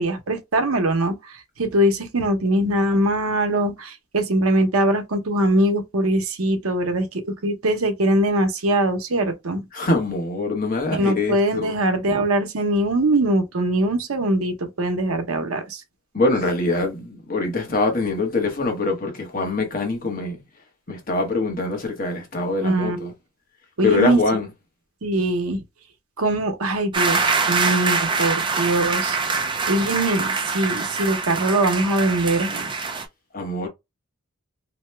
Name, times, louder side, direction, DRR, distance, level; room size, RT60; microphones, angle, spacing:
voice 1, 0.0-9.7 10.9-15.8 22.6-23.1 23.8-24.2 25.0-25.6 26.2-29.2 29.7-32.7, right 1 dB, 85° right, 0.8 m, -22 dB
voice 2, 9.7-11.7 16.1-20.4 20.9-23.1 23.8-24.5 32.9-33.0 33.3-33.7, left 3 dB, 40° left, 1.0 m, -24 dB
sound 1, 26.9-33.0, right 4 dB, 20° right, 0.4 m, -24 dB
2.8 x 2.2 x 3.2 m
head